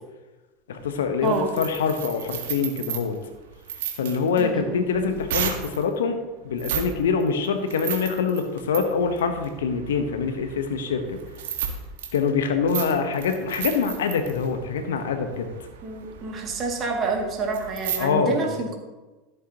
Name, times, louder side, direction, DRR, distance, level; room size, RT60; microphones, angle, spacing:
voice 1, 0.7-3.2 4.0-6.2 6.4-11.2 12.1-15.5 18.0-18.6, left 5 dB, 70° left, 7 dB, 1.1 m, -25 dB
sound 1, 0.8-5.8 6.5-6.9 7.2-18.0, right 8 dB, 65° right, 1.6 m, -34 dB
voice 2, 4.4-4.8 15.8-18.8, right 4 dB, 35° right, 1 dB, 2.4 m, -28 dB
14.0 x 8.0 x 3.0 m, 1.2 s
figure-of-eight pair, 80°, 0 cm